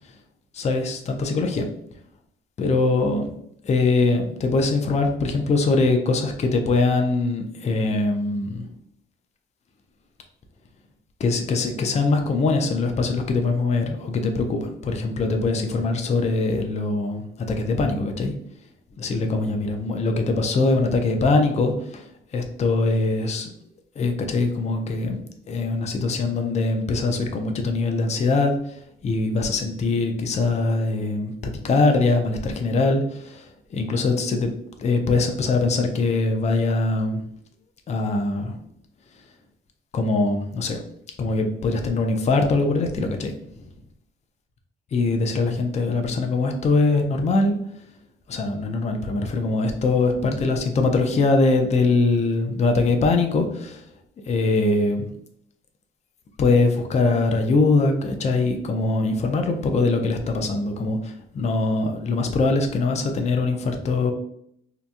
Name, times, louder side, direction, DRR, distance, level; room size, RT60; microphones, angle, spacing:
voice 1, 0.5-1.7 2.6-3.3 3.6-8.6 11.2-17.2 17.5-18.3 19.0-22.0 22.3-23.5 24.0-28.5 29.0-31.3 31.6-34.5 34.8-37.2 37.9-38.6 39.9-40.8 41.2-43.3 44.9-47.5 48.3-53.8 54.3-55.1 56.4-64.1, left 3 dB, 35° left, 5 dB, 0.4 m, -22 dB
2.8 x 2.2 x 2.5 m, 0.71 s
cardioid pair, 90°, 20 cm